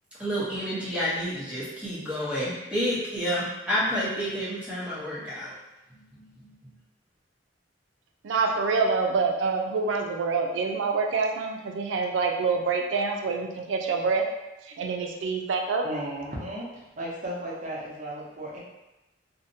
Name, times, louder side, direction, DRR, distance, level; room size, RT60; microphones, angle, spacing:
voice 1, 0.2-5.5 6.4-6.5, equal, 5° right, -9 dB, 0.7 m, -29 dB
voice 2, 8.2-14.2 14.7-15.9, right 4 dB, 85° right, 3 dB, 0.4 m, -26 dB
voice 3, 15.8-18.6, right 1 dB, 40° right, -6 dB, 0.6 m, -35 dB
2.6 x 2.0 x 2.6 m, 0.99 s
head